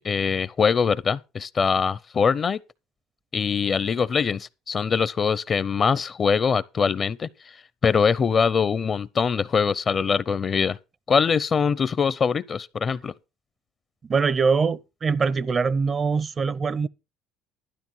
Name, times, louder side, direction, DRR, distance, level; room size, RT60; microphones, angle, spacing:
voice 1, 0.0-2.6 3.3-10.8 11.1-13.1, left 6 dB, 40° left, 0.6 m, -23 dB
voice 2, 14.1-16.9, right 5 dB, 35° right, 0.5 m, -23 dB
12.0 x 10.5 x 4.6 m
supercardioid pair, 90°, 0 cm